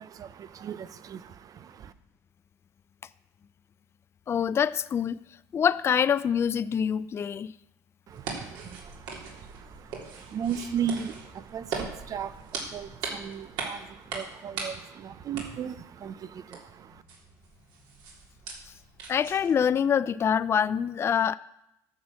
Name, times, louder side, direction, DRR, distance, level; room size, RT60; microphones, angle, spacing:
voice 1, 0.0-1.9 8.1-17.0, right 8 dB, 45° right, 0.8 m, -37 dB
voice 2, 4.3-5.2 5.5-7.5 19.1-21.4, left 8 dB, 30° left, 0.4 m, -25 dB
sound 1, 8.1-19.6, right 4 dB, 70° right, 3.4 m, -40 dB
10.5 x 6.2 x 7.5 m
supercardioid pair, 90°, 8 cm